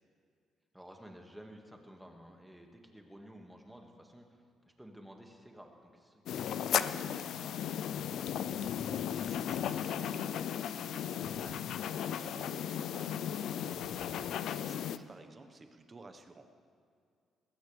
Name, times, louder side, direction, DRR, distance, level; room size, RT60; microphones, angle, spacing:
voice 1, 0.7-8.4, equal, 5° right, 2 dB, 2.0 m, -54 dB
sound 1, 6.3-15.0, left 9 dB, 75° left, 0.5 m, -35 dB
voice 2, 8.8-16.5, right 3 dB, 30° right, 7 dB, 1.3 m, -54 dB
21.0 x 15.5 x 3.4 m, 2.3 s
cardioid pair, 90°, 0 cm